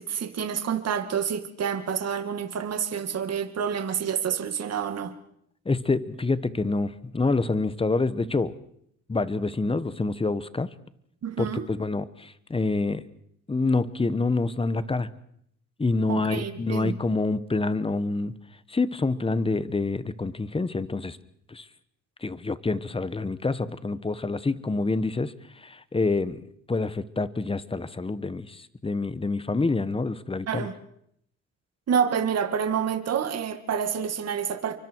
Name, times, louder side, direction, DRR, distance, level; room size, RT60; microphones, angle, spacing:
voice 1, 0.0-5.1 11.2-11.7 16.1-16.9 30.5-30.7 31.9-34.8, right 7 dB, 55° right, 2.2 m, -28 dB
voice 2, 5.6-8.5 9.1-10.7 11.4-13.0 13.5-15.1 15.8-18.3 18.7-21.2 21.5-21.7 22.2-30.7, left 3 dB, 20° left, 1.2 m, -27 dB
28.5 x 24.0 x 4.7 m
cardioid pair, 90°, 30 cm